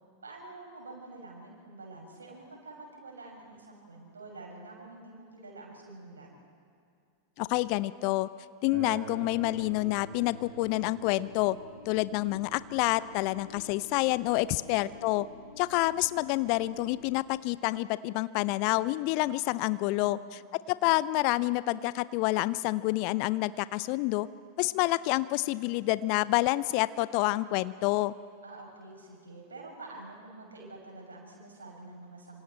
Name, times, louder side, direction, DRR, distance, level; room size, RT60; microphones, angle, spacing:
voice 1, 0.2-6.3 14.6-15.1 19.8-20.3 28.4-32.4, right 2 dB, 75° right, -2 dB, 6.3 m, -47 dB
voice 2, 7.4-8.3 8.6-11.6 11.9-15.3 15.6-20.4 20.7-24.3 24.6-28.1, left 18 dB, 45° left, 18 dB, 0.5 m, -28 dB
Acoustic guitar, 8.7-13.9, right 6 dB, 35° right, 7.1 m, -48 dB
sound 1, 9.2-17.2, left 4 dB, 70° left, 2.6 m, -51 dB
26.5 x 26.0 x 4.4 m, 2.4 s
figure-of-eight pair, 90°, 0 cm